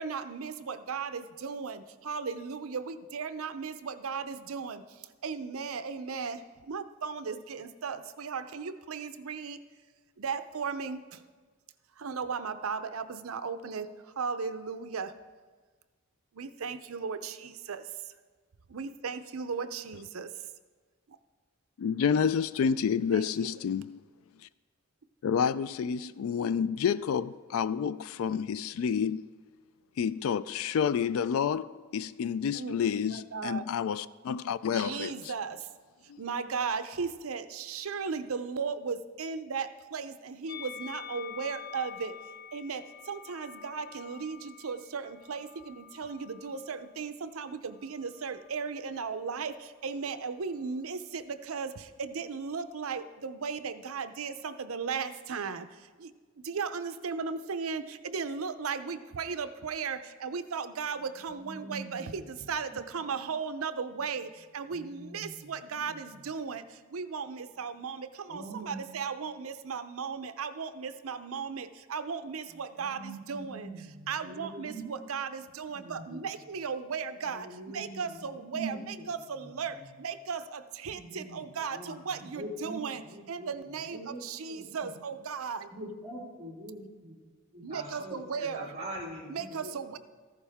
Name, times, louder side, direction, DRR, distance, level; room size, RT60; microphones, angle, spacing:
voice 1, 0.0-9.6 10.2-11.2 12.0-15.1 16.3-18.1 18.7-20.3 23.1-23.5 32.5-32.8 33.0-33.7 34.7-35.7 36.2-42.1 42.5-56.1 56.4-73.7 74.1-83.0 83.3-85.7 87.6-88.8 89.3-90.0, right 5 dB, 75° right, 0.6 m, -36 dB
voice 2, 21.8-24.0 25.2-29.4 30.0-35.1 36.1-36.2, left 7 dB, 75° left, 0.3 m, -29 dB
Musical instrument, 40.5-46.9 47.7-48.7, left 8 dB, 50° left, 0.8 m, -47 dB
voice 3, 61.4-62.4 64.7-65.9 66.2-66.3 68.3-68.9 72.8-73.8 74.2-75.0 75.7-76.2 77.2-78.8 79.2-79.9 80.9-82.8 83.1-83.5 83.9-84.9 85.7-87.1 87.5-89.7, right 1 dB, 30° right, 2.5 m, -43 dB
14.5 x 11.5 x 3.5 m
head